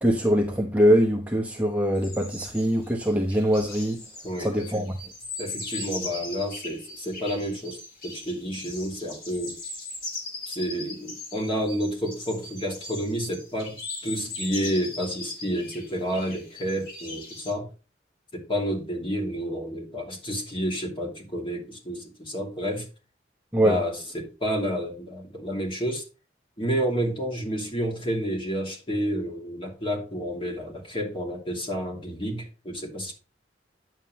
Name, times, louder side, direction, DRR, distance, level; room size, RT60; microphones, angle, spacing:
voice 1, 0.0-4.0 4.4-4.9 23.5-23.8, equal, 10° right, 1.0 m, -23 dB
sound 1, 1.9-17.5, left 3 dB, 55° left, 3.4 m, -39 dB
voice 2, 4.2-4.8 5.4-9.6 10.5-13.8 14.0-17.7 18.3-22.9 23.6-26.0 26.6-33.1, equal, 30° left, 2.6 m, -30 dB
9.8 x 7.5 x 3.1 m
head